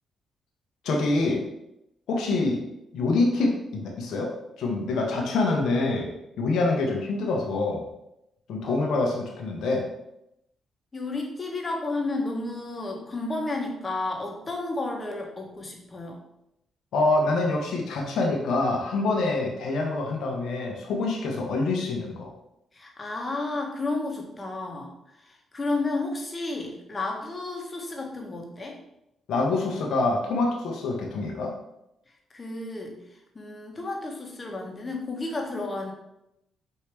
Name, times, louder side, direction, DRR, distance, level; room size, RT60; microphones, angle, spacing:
voice 1, 0.8-1.4 2.1-2.6 2.9-4.3 4.6-6.1 6.4-7.8 8.5-9.8 16.9-22.3 29.3-31.5, left 2 dB, 75° left, 0 dB, 0.8 m, -25 dB
voice 2, 8.6-9.2 10.9-16.2 22.7-24.9 25.2-28.8 32.3-33.0 33.3-35.9, left 2 dB, 30° left, 1 dB, 1.1 m, -32 dB
4.5 x 2.8 x 3.3 m, 0.84 s
supercardioid pair, 65°, 0 cm